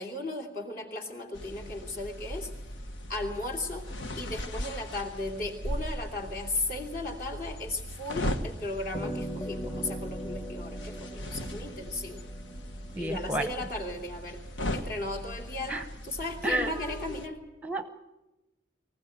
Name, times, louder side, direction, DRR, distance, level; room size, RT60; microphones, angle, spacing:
voice 1, 0.0-2.5 3.1-3.9 4.1-12.2 13.0-14.4 14.7-15.8 16.0-17.4, left 2 dB, 50° left, 4 dB, 3.2 m, -36 dB
sound 1, 1.3-17.3, left 1 dB, 85° left, 1.5 m, -38 dB
sound 2, 8.9-13.6, right 1 dB, 25° left, 1.9 m, -40 dB
voice 2, 13.0-13.4 15.7-15.8 16.4-17.1 17.6-17.9, right 1 dB, 10° right, 9 dB, 0.8 m, -31 dB
24.0 x 15.5 x 9.2 m, 1.0 s
head